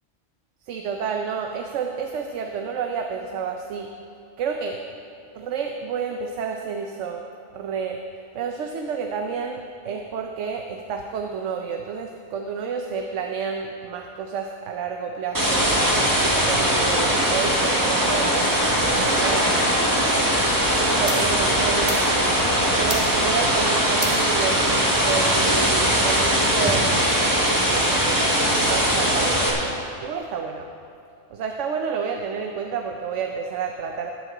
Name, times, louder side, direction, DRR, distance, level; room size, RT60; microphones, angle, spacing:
voice 1, 0.7-3.9 4.4-4.8 5.3-7.2 7.5-8.0 8.3-15.7 16.2-20.4 20.7-22.0 22.8-28.2 28.6-29.7 30.0-30.7 31.3-34.1, right 6 dB, 80° right, 3 dB, 1.0 m, -30 dB
sound 1, 15.3-29.5, equal, 15° right, 1.6 m, -21 dB
sound 2, 20.3-27.8, right 1 dB, 30° right, 1.5 m, -38 dB
14.5 x 9.4 x 3.8 m, 2.5 s
omnidirectional pair, 1.3 m